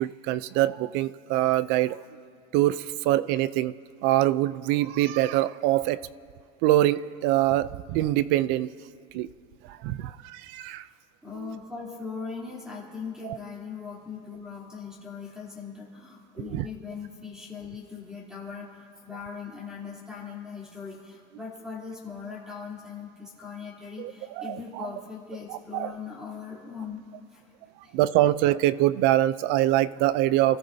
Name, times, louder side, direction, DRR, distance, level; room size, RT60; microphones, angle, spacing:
voice 1, 0.0-2.0 2.5-3.8 4.0-6.0 6.6-8.7 9.1-9.3 9.6-10.9 11.4-11.5 13.2-13.4 16.5-16.7 24.0-24.9 25.5-25.9 27.9-30.6, right 14 dB, 55° right, 17 dB, 0.5 m, -24 dB
voice 2, 10.8-27.0 27.3-27.5 27.8-28.0, left 5 dB, 5° right, -4 dB, 3.3 m, -40 dB
29.5 x 14.5 x 2.7 m, 2.3 s
cardioid pair, 160°, 21 cm